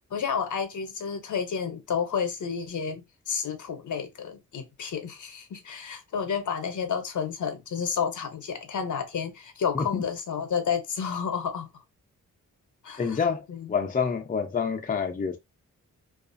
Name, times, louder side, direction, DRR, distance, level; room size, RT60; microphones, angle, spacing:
voice 1, 0.1-11.7 12.8-13.2 13.5-13.7, left 6 dB, 65° left, 0.7 m, -31 dB
voice 2, 13.0-13.4 13.7-15.4, left 6 dB, 25° left, 0.5 m, -27 dB
2.4 x 2.4 x 2.5 m
cardioid pair, 60°, 33 cm